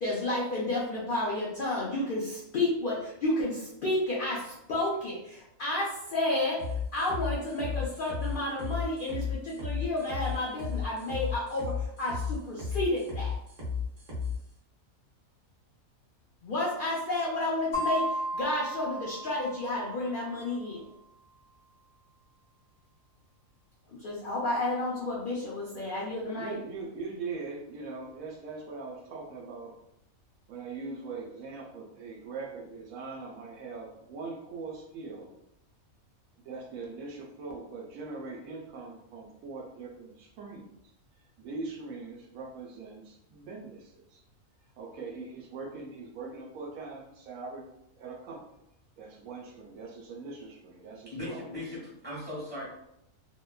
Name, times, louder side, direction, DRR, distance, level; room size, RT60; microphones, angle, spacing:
voice 1, 0.0-13.4 16.4-20.9 23.9-26.6, left 2 dB, 70° left, -5 dB, 0.5 m, -31 dB
sound 1, 6.6-14.4, left 6 dB, 35° right, 0.7 m, -34 dB
sound 2, 17.7-20.2, right 1 dB, 45° left, 0.8 m, -34 dB
voice 2, 26.4-29.7 30.5-35.4 36.4-40.7 41.4-44.2 44.8-47.7 48.0-48.4 49.0-51.4, right 4 dB, 75° right, -1 dB, 1.0 m, -41 dB
voice 3, 51.1-52.7, left 1 dB, 10° right, -7 dB, 1.1 m, -38 dB
2.8 x 2.2 x 2.2 m, 0.79 s
omnidirectional pair, 1.5 m